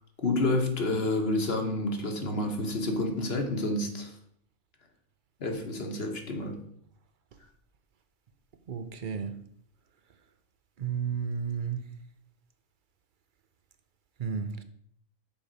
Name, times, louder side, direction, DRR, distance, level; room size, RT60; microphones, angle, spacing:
voice 1, 0.2-4.1 5.4-6.6, left 2 dB, 50° left, 1.4 m, -29 dB
voice 2, 8.7-9.4 10.8-11.9 14.2-14.6, right 6 dB, 50° right, 0.7 m, -32 dB
7.2 x 4.9 x 5.2 m
omnidirectional pair, 1.3 m